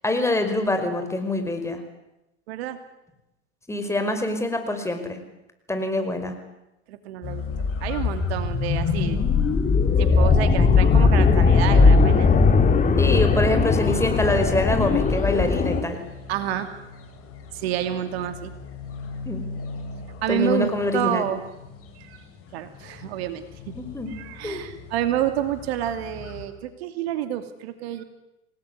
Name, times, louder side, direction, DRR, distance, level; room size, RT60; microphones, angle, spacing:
voice 1, 0.0-1.8 3.7-5.2 5.7-6.3 13.0-16.0 19.3-19.5 20.3-21.3 23.7-24.1 24.4-24.6, left 2 dB, 10° left, 7 dB, 5.3 m, -25 dB
voice 2, 2.5-2.8 6.9-7.4 7.8-9.3 10.0-12.3 16.3-16.7 17.5-18.5 20.2-21.4 22.0-22.2 22.5-23.7 24.1-28.0, right 11 dB, 65° right, 9 dB, 2.7 m, -29 dB
sound 1, 7.2-26.5, left 5 dB, 40° left, 7.6 m, -38 dB
sound 2, 7.5-15.8, left 4 dB, 25° left, 3.2 m, -19 dB
28.0 x 19.0 x 9.8 m, 0.92 s
hypercardioid pair, 95°, 33 cm